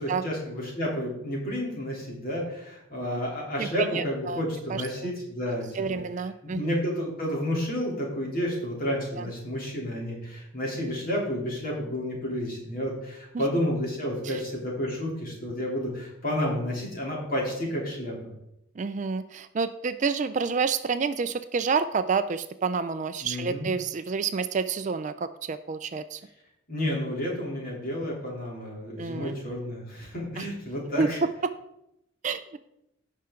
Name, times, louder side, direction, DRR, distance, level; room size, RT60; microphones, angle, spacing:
voice 1, 0.0-6.0 6.4-18.3 23.2-23.7 26.7-31.2, equal, 45° left, -2 dB, 3.1 m, -31 dB
voice 2, 3.6-4.4 4.7-5.1 5.7-6.7 9.2-9.3 13.3-13.4 14.2-14.4 18.8-26.2 29.0-29.4 30.4-30.5 31.0-31.5 32.2-32.6, right 5 dB, 35° right, 11 dB, 0.3 m, -29 dB
16.0 x 5.7 x 3.7 m, 0.84 s
head